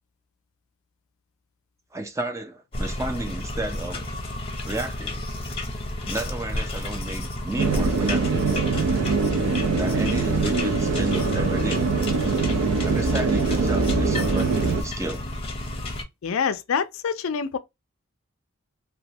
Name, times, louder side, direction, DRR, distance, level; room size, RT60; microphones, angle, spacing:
voice 1, 1.9-4.1 4.6-5.2 6.0-8.5 9.8-11.9 12.8-15.2, right 2 dB, 15° right, 0.4 m, -32 dB
sound 1, 2.7-16.0, left 1 dB, 25° left, 0.7 m, -32 dB
sound 2, 7.6-14.8, right 4 dB, 85° right, 0.6 m, -23 dB
voice 2, 16.2-17.6, left 6 dB, 60° left, 0.4 m, -26 dB
2.9 x 2.2 x 2.8 m
head